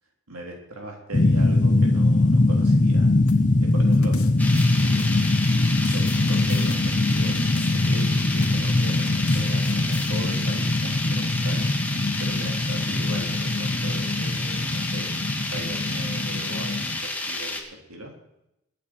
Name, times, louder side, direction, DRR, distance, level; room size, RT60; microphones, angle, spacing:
voice 1, 0.3-3.1 3.6-5.1 5.8-11.6 12.2-15.2 15.5-17.6 17.9-18.1, right 1 dB, 80° right, 1 dB, 3.3 m, -39 dB
sound 1, 1.1-17.0, left 2 dB, 35° left, 0.9 m, -22 dB
sound 2, 3.3-5.4 5.9-8.0 8.4-8.7 9.1-10.1, left 3 dB, 85° left, 1.8 m, -41 dB
sound 3, 4.4-17.6, left 2 dB, 10° left, 1.8 m, -31 dB
23.0 x 8.6 x 4.4 m, 0.84 s
head